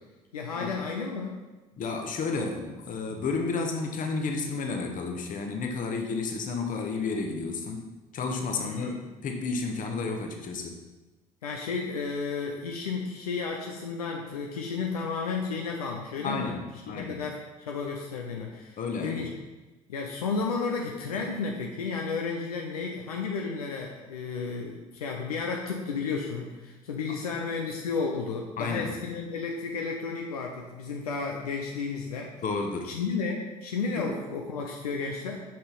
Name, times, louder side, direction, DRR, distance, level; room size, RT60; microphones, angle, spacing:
voice 1, 0.3-1.4 8.6-9.0 11.4-16.5 16.9-19.3 19.9-32.3 32.9-35.4, left 4 dB, 80° left, 0 dB, 0.6 m, -32 dB
voice 2, 1.8-7.9 8.1-10.8 16.2-17.2 18.8-19.2 28.6-28.9 32.4-33.0 34.0-34.1, left 4 dB, 45° left, 3 dB, 1.1 m, -31 dB
6.4 x 5.5 x 4.0 m, 1.1 s
figure-of-eight pair, 50°, 19 cm